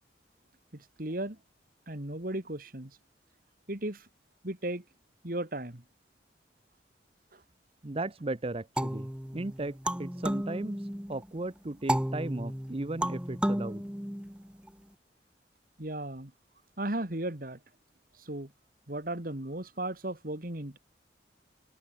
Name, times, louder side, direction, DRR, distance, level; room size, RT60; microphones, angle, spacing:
voice 1, 1.0-1.4 1.9-2.9 3.7-4.1 4.4-4.8 5.2-5.8 7.3-7.4 15.8-16.3 16.8-17.6 18.2-18.5 18.9-20.8, right 1 dB, 50° right, 2.6 m, -35 dB
voice 2, 7.8-13.8, right 2 dB, 30° right, 0.8 m, -36 dB
sound 1, 8.8-11.2 11.9-14.7, equal, 5° right, 1.5 m, -33 dB
head